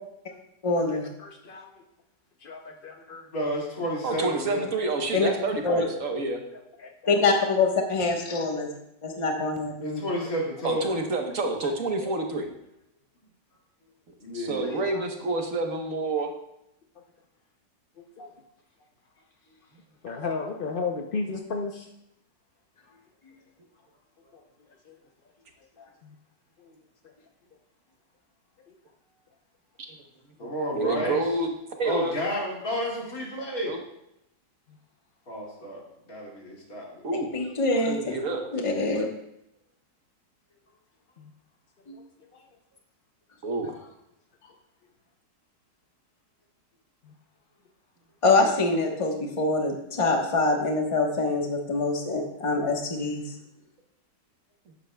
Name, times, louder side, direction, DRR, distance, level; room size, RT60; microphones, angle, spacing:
voice 1, 0.6-1.1 5.1-5.3 5.6-5.8 7.1-8.7 9.0-10.0 37.3-38.1 38.5-39.1 41.9-42.0 48.2-53.2, left 3 dB, 20° left, 2 dB, 1.0 m, -25 dB
voice 2, 1.2-1.8 2.4-3.3 4.1-4.2 6.5-7.2 8.5-8.7 11.6-11.7 12.0-12.1 14.7-15.1 18.0-18.3 20.0-21.9 24.3-24.4 24.9-25.0 25.8-26.1 26.6-26.7 28.7-28.8 41.2-41.3 42.0-42.1 42.3-42.4 47.0-47.1, left 4 dB, 70° left, 3 dB, 0.5 m, -35 dB
voice 3, 3.3-4.7 9.8-10.9 14.2-14.8 30.4-31.2 31.8-33.7 35.3-37.0, equal, 50° left, -4 dB, 2.8 m, -31 dB
voice 4, 4.0-6.4 10.6-12.5 14.3-16.3 29.9-30.0 30.7-31.5 31.8-32.2 33.6-33.8 37.0-37.3 37.9-38.4 43.4-43.8, right 2 dB, 50° right, 3 dB, 1.3 m, -28 dB
12.0 x 9.1 x 2.3 m, 0.80 s
omnidirectional pair, 1.9 m